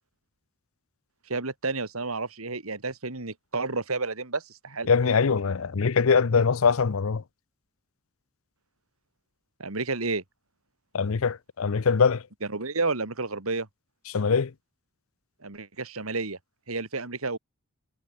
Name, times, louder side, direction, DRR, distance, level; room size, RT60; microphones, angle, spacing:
voice 1, 1.3-4.9 9.6-10.2 12.5-13.7 15.4-16.4 16.7-17.4, right 3 dB, 80° right, 2.6 m, -31 dB
voice 2, 4.9-7.2 10.9-12.2 14.1-14.5, left 5 dB, 70° left, 0.6 m, -23 dB
head